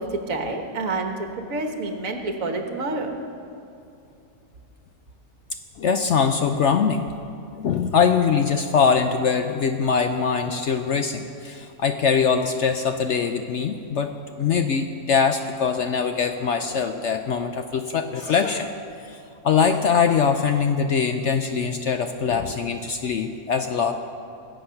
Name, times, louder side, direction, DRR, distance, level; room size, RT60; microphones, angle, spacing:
voice 1, 0.0-3.1, right 2 dB, 60° right, 4 dB, 1.6 m, -28 dB
voice 2, 5.8-7.0 7.5-18.7 19.0-19.2 19.4-23.9, left 6 dB, 65° left, 7 dB, 0.7 m, -22 dB
20.5 x 7.9 x 5.7 m, 2.6 s
omnidirectional pair, 1.7 m